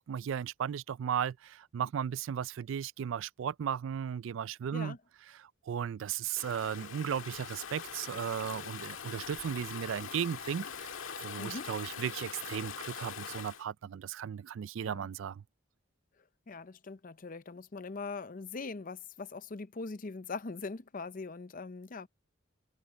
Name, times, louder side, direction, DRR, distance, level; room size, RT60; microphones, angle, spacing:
voice 1, 0.1-4.9 5.4-10.9 11.2-15.4, right 8 dB, 70° right, 0.3 m, -36 dB
Stream / Ocean, 6.4-13.6, left 7 dB, 85° left, 1.7 m, -43 dB
voice 2, 11.4-11.7 14.8-15.1 16.5-22.1, left 4 dB, 45° left, 0.6 m, -41 dB
head